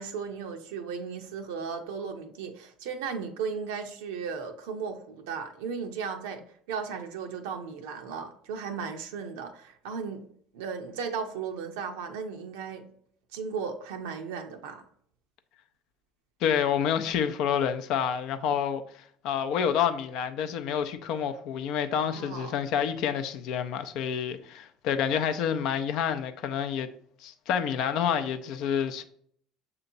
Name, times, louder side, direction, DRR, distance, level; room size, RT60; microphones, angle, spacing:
voice 1, 0.0-6.4 6.7-10.3 10.5-12.9 13.3-14.8 22.1-22.6, right 6 dB, 80° right, 0.5 m, -36 dB
voice 2, 16.4-26.9 27.2-29.0, left 8 dB, 65° left, 0.5 m, -28 dB
6.7 x 2.9 x 2.6 m
hypercardioid pair, 75°, 0 cm